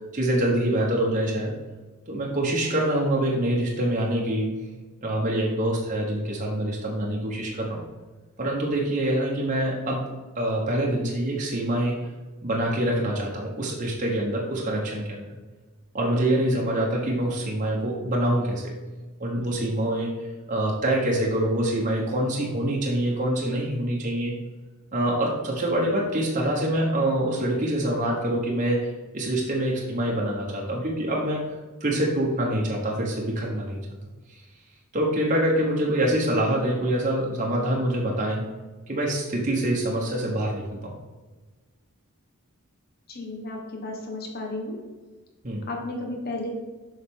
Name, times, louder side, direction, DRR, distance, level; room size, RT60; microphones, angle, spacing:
voice 1, 0.0-1.5 2.1-4.6 5.0-7.8 8.4-12.1 12.4-15.3 15.9-18.7 19.2-24.4 24.9-31.4 31.8-33.9 34.9-38.4 38.9-41.0 45.4-45.6, right 1 dB, 35° right, -2 dB, 1.1 m, -25 dB
voice 2, 43.1-44.8 45.7-46.5, left 2 dB, 45° left, 1 dB, 1.4 m, -33 dB
7.0 x 5.8 x 3.7 m, 1.3 s
head